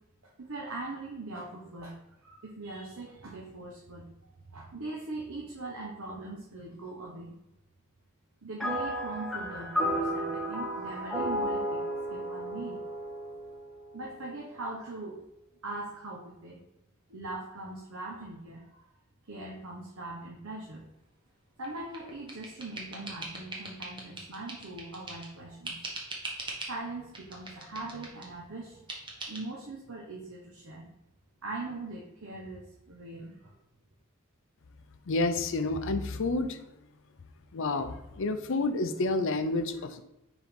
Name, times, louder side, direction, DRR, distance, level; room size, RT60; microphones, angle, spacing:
voice 1, 0.2-2.0 2.2-4.1 4.5-7.3 8.4-11.8 12.1-12.8 13.9-15.2 15.6-16.6 17.1-18.8 19.3-20.8 21.6-25.7 26.7-28.9 29.3-30.9 31.4-33.5, right 2 dB, 75° right, -2 dB, 1.0 m, -41 dB
sound 1, 8.6-14.1, equal, ahead, 1.1 m, -33 dB
sound 2, 21.6-25.3 25.6-26.8 27.1-28.3 28.9-29.4, right 2 dB, 25° right, 1.2 m, -41 dB
voice 2, 35.1-36.6 37.5-40.0, left 2 dB, 65° left, 9 dB, 0.6 m, -29 dB
4.8 x 3.8 x 5.2 m, 0.91 s
head